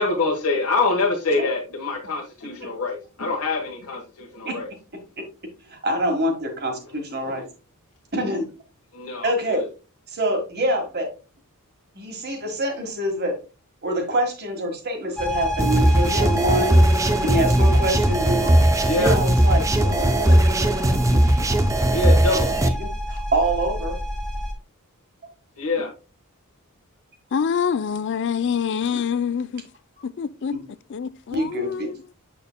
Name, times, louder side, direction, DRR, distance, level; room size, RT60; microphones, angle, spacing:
voice 1, 0.0-4.7 7.2-7.4 8.9-9.7 18.8-19.1 21.9-22.8 25.6-25.9, left 3 dB, 80° left, 1.3 m, -25 dB
voice 2, 5.7-7.4 8.1-8.5 9.2-9.6 10.1-11.1 11.9-13.4 13.8-16.8 17.2-18.5 18.9-20.6 21.3-21.4 22.4-24.0 28.9-29.0 30.5-30.6 31.3-31.9, right 1 dB, 45° right, 1.6 m, -26 dB
sound 1, 15.2-24.5, equal, 5° left, 0.8 m, -29 dB
sound 2, 15.6-22.7, right 1 dB, 15° right, 0.5 m, -18 dB
voice 3, 27.3-29.6 30.0-30.5 30.9-32.0, left 7 dB, 50° left, 0.4 m, -25 dB
7.0 x 6.6 x 2.2 m
head